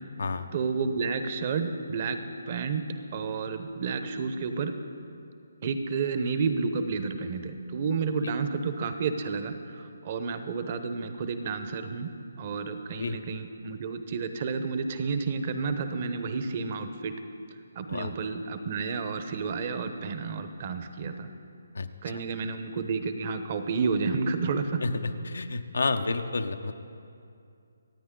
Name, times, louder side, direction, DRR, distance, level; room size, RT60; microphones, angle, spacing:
voice 1, 0.5-2.8 3.1-4.7 5.6-12.1 12.4-17.1 17.8-21.3 22.0-24.8, right 5 dB, 35° right, 9 dB, 1.0 m, -31 dB
voice 2, 24.8-26.7, left 3 dB, 80° left, 7 dB, 0.8 m, -30 dB
26.0 x 9.1 x 3.9 m, 2.5 s
hypercardioid pair, 160°, 0 cm